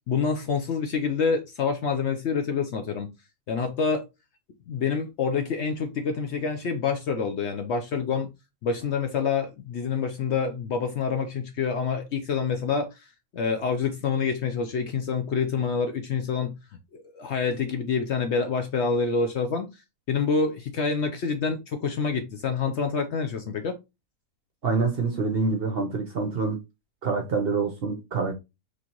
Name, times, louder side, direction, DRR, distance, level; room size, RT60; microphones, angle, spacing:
voice 1, 0.1-3.1 3.5-4.0 4.7-8.3 8.6-13.0 13.3-16.6 16.9-19.7 20.1-23.8, left 5 dB, 65° left, 0.7 m, -27 dB
voice 2, 24.6-26.6 27.0-28.4, right 4 dB, 55° right, 0.7 m, -26 dB
4.1 x 3.2 x 2.8 m
omnidirectional pair, 1.6 m